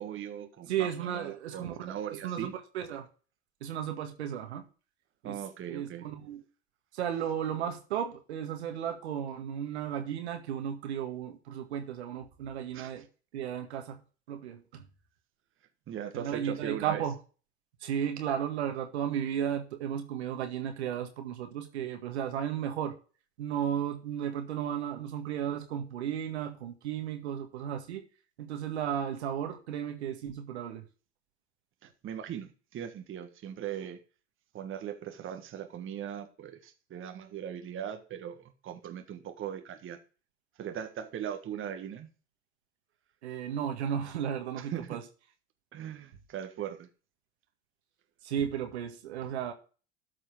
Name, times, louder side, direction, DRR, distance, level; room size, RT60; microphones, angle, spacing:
voice 1, 0.0-2.5 5.2-6.1 12.7-13.0 15.9-17.0 31.8-34.0 34.5-40.0 40.6-42.1 44.6-45.0 45.7-46.9, right 9 dB, 35° right, 1.6 m, -39 dB
voice 2, 0.7-2.0 2.2-3.1 3.6-4.6 5.2-5.4 5.7-6.4 6.9-13.1 13.3-14.0 14.3-14.8 16.1-17.1 17.8-22.9 23.4-28.0 28.4-30.8 43.2-45.0 48.2-49.5, right 9 dB, 70° right, 1.9 m, -34 dB
13.0 x 4.9 x 6.3 m
figure-of-eight pair, 70°, 34 cm